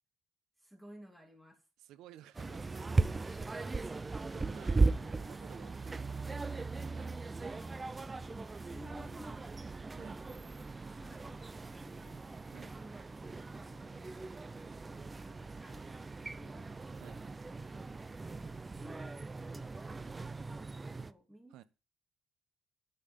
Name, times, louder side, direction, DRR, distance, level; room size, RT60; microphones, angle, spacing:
voice 1, 0.6-1.6 3.0-3.2 3.5-3.8 4.6-5.1 5.5-7.8 8.3-10.6 10.9-16.8 17.5-18.2 18.7-19.2 19.5-21.6, equal, 5° right, 2.9 m, -57 dB
voice 2, 1.8-3.1 4.0-4.8 5.1-6.2 6.9-7.2 10.0-10.2 12.5-12.7 17.0-17.3 21.5-21.6, right 13 dB, 85° right, 1.0 m, -56 dB
sound 1, 2.3-21.1, right 3 dB, 20° right, 0.6 m, -38 dB
sound 2, 2.5-17.7, right 5 dB, 45° right, 2.6 m, -64 dB
10.5 x 5.7 x 8.4 m
cardioid pair, 110°, 0 cm